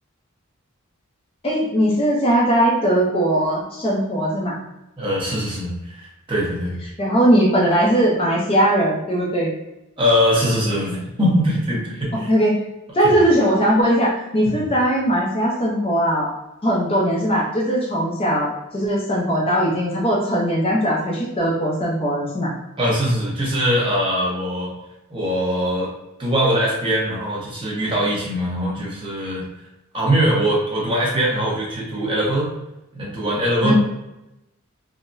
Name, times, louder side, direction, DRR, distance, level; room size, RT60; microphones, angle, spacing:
voice 1, 1.4-4.6 7.0-9.5 12.1-12.6 12.9-16.3 16.6-22.5 33.6-33.7, equal, 25° left, -4 dB, 0.5 m, -19 dB
voice 2, 5.0-6.8 10.0-12.3 13.0-13.2 14.4-14.6 22.8-24.7 25.1-25.9 26.2-29.4 29.9-32.5 32.9-33.7, equal, 25° right, -5 dB, 0.9 m, -22 dB
3.8 x 2.0 x 2.6 m, 0.91 s
head